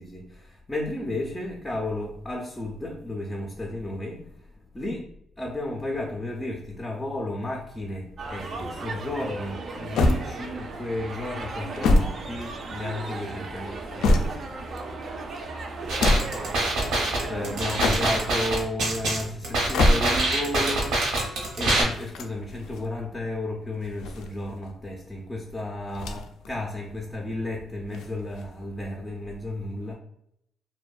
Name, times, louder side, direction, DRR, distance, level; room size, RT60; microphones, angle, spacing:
voice 1, 0.0-5.0 5.4-14.5 17.2-21.0 21.6-29.9, left 1 dB, 15° left, 0.4 m, -33 dB
sound 1, 8.2-18.4, right 3 dB, 50° right, 0.4 m, -36 dB
sound 2, 9.9-10.8 11.5-12.9 13.6-14.6 15.8-16.5 17.6-18.3 19.5-20.4 21.9-22.9 23.8-24.7 25.9-26.5 26.8-26.9 27.9-28.7, left 2 dB, 85° left, 0.3 m, -25 dB
sound 3, 15.9-21.8, right 2 dB, 80° right, 0.7 m, -25 dB
2.5 x 2.1 x 2.3 m
cardioid pair, 90°, 0 cm